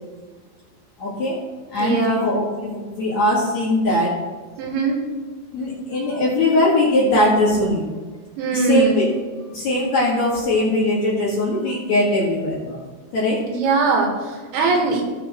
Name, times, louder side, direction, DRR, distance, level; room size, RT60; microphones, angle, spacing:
voice 1, 1.0-1.4 1.7-4.1 5.5-7.9 8.5-9.1 9.5-12.8 13.1-13.4 14.6-14.7, left 1 dB, 50° left, -7 dB, 2.5 m, -20 dB
voice 2, 1.8-2.3 4.6-5.0 8.4-9.0 13.5-15.0, right 3 dB, 80° right, 1 dB, 3.7 m, -21 dB
17.0 x 5.8 x 3.2 m, 1.4 s
omnidirectional pair, 5.5 m